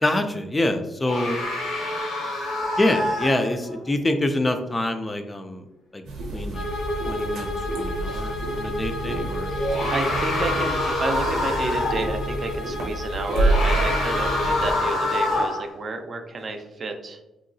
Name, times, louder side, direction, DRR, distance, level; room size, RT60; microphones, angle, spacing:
voice 1, 0.0-1.4 2.8-5.6 5.9-6.0 6.3-6.7 7.1-7.5 7.8-9.5, left 1 dB, 20° left, 6 dB, 0.3 m, -25 dB
sound 1, 1.1-3.8 8.1-8.2 9.5-12.1 13.3-15.7, left 2 dB, 85° left, 0.9 m, -26 dB
sound 2, 6.0-14.7, right 2 dB, 90° right, 0.7 m, -29 dB
Bowed string instrument, 6.5-15.1, left 1 dB, 55° left, 0.7 m, -32 dB
voice 2, 9.5-17.2, right 3 dB, 45° right, 5 dB, 0.5 m, -31 dB
3.0 x 2.7 x 2.6 m, 0.98 s
cardioid pair, 90°, 0 cm